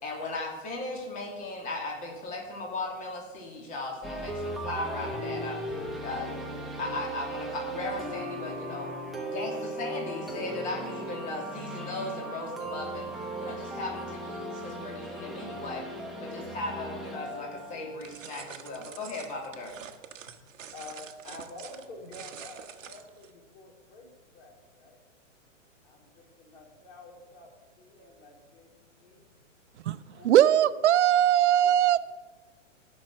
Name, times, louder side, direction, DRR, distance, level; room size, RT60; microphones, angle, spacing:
voice 1, 0.0-8.9 9.3-15.9 16.2-19.7, left 2 dB, 20° left, -1 dB, 2.9 m, -37 dB
sound 1, 4.0-18.9, right 1 dB, ahead, 0.8 m, -37 dB
sound 2, 18.0-23.3, right 8 dB, 80° right, 1.3 m, -46 dB
voice 2, 20.7-25.0 25.8-27.5 27.8-29.3 30.1-30.7 31.4-31.5, left 2 dB, 60° left, 1 dB, 4.3 m, -48 dB
voice 3, 29.8-32.0, right 11 dB, 65° right, 16 dB, 0.6 m, -21 dB
15.0 x 6.2 x 7.6 m, 1.3 s
hypercardioid pair, 155°, 38 cm